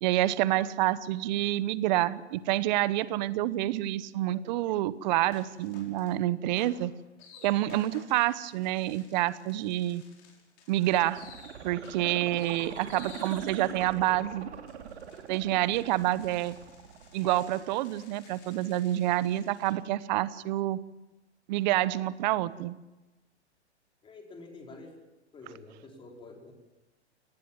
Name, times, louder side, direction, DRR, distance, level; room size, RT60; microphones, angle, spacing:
voice 1, 0.0-6.9 7.4-10.0 10.7-11.2 11.6-14.5 15.3-16.5 17.1-20.8 21.5-22.8, right 15 dB, 40° right, 18 dB, 1.0 m, -28 dB
sound 1, 5.3-6.2 6.6-19.7, left 5 dB, 35° left, 6.2 m, -54 dB
sound 2, 10.8-17.8 18.2-18.3, right 7 dB, 70° right, 2.8 m, -43 dB
voice 2, 24.0-25.0 25.3-26.5, left 3 dB, 15° left, 1 dB, 4.7 m, -48 dB
23.0 x 19.0 x 7.5 m, 1.1 s
hypercardioid pair, 125°, 34 cm